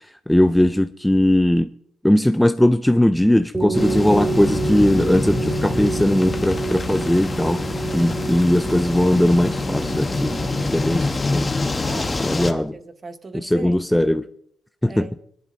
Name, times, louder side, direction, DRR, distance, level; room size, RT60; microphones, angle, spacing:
voice 1, 0.3-1.7 2.0-7.6 7.9-10.4 10.7-11.1 11.3-11.5 12.2-12.7 13.4-14.3 14.8-15.1, left 1 dB, 5° left, 0.4 m, -19 dB
sound 1, 3.5-11.0, right 4 dB, 15° right, 1.8 m, -29 dB
sound 2, 3.7-12.5, left 3 dB, 25° left, 1.0 m, -26 dB
voice 2, 11.8-13.9 14.9-15.1, right 3 dB, 30° right, 1.0 m, -37 dB
24.0 x 11.0 x 2.7 m
cardioid pair, 90°, 0 cm